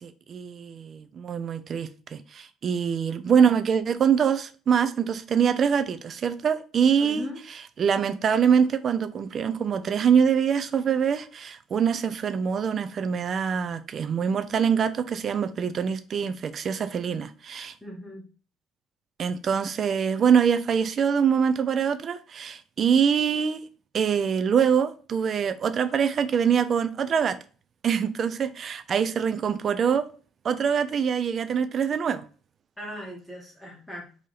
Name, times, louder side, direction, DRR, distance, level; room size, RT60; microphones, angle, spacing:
voice 1, 0.0-7.2 7.8-17.7 19.2-23.6 23.9-27.4 27.8-30.1 30.4-32.2, right 7 dB, 35° right, 0.4 m, -24 dB
voice 2, 7.0-7.4 17.8-18.2 32.8-34.1, left 1 dB, 5° left, 0.9 m, -38 dB
3.8 x 2.8 x 4.7 m
cardioid pair, 170°, 0 cm